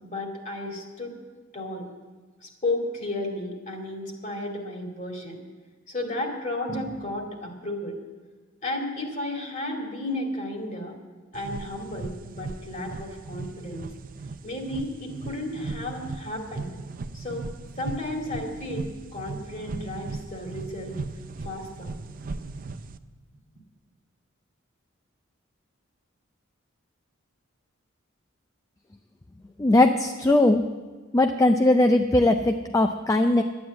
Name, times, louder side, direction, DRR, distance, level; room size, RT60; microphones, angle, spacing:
voice 1, 0.0-1.2 1.5-1.9 2.4-5.4 5.9-8.0 8.6-11.0 11.3-13.8 14.4-16.7 17.1-17.5 17.8-21.0 21.4-21.9, left 1 dB, 40° left, 1 dB, 2.3 m, -33 dB
sound 1, 11.3-23.0, right 3 dB, 45° right, 0.5 m, -38 dB
voice 2, 29.6-30.6 31.1-33.4, left 2 dB, 15° left, 6 dB, 0.4 m, -19 dB
11.5 x 9.6 x 8.4 m, 1.4 s
head